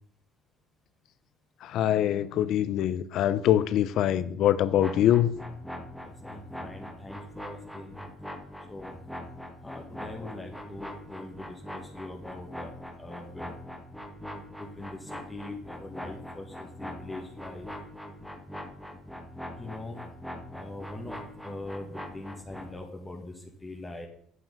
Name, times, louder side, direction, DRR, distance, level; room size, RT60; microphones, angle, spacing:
voice 1, 1.6-5.3, left 11 dB, 65° left, 15 dB, 0.6 m, -24 dB
sound 1, 4.7-22.8, left 1 dB, ahead, 1.7 m, -42 dB
voice 2, 6.0-8.0 8.7-8.9 9.6-12.7 13.0-13.5 14.6-17.7 19.6-20.0 20.5-21.2 21.4-23.3 23.6-24.1, left 2 dB, 15° left, 1 dB, 1.9 m, -42 dB
9.5 x 5.9 x 5.4 m, 0.63 s
supercardioid pair, 85°, 0 cm